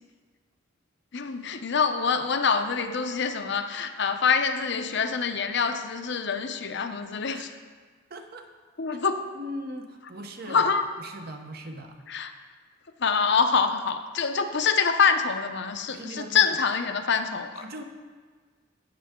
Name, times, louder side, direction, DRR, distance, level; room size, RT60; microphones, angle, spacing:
voice 1, 1.1-7.5 8.8-9.2 10.5-10.8 12.1-12.3 13.0-17.7, left 5 dB, 60° left, 7 dB, 0.7 m, -25 dB
voice 2, 8.1-8.5 8.9-9.0 9.3-10.7 11.0-12.0 15.9-16.6 17.6-17.8, equal, 50° right, 4 dB, 0.9 m, -39 dB
17.0 x 6.6 x 3.7 m, 1.5 s
head